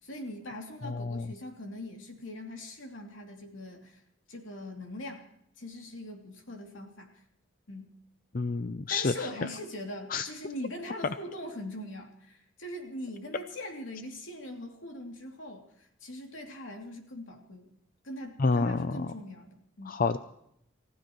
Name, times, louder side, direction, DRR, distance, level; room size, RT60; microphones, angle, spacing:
voice 1, 0.0-4.0 4.3-5.2 5.6-7.1 7.7-7.9 8.9-17.7 18.0-20.0, left 1 dB, 75° left, 2 dB, 2.9 m, -41 dB
voice 2, 0.8-1.3 8.3-9.3 10.1-10.3 18.4-19.1 19.9-20.2, left 4 dB, 45° left, 10 dB, 0.5 m, -29 dB
29.5 x 15.0 x 3.1 m, 0.75 s
head